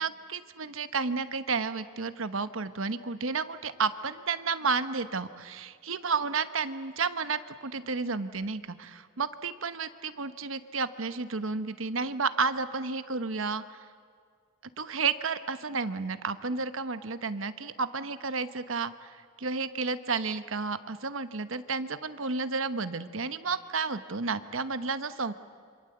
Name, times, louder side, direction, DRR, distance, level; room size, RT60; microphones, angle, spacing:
voice 1, 0.0-13.9 14.8-19.1 19.4-25.3, right 4 dB, 75° right, 11 dB, 1.1 m, -31 dB
27.5 x 26.0 x 7.9 m, 2.2 s
head